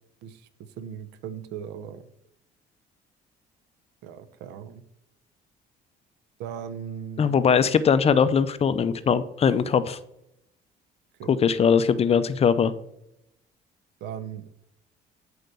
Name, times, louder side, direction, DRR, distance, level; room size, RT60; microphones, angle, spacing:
voice 1, 0.8-2.1 4.0-4.8 6.4-7.4 11.2-11.4 14.0-14.5, right 8 dB, 90° right, 13 dB, 0.8 m, -38 dB
voice 2, 7.2-10.0 11.3-12.7, left 6 dB, 35° left, 14 dB, 0.6 m, -21 dB
8.2 x 4.7 x 6.8 m, 0.80 s
cardioid pair, 110°, 17 cm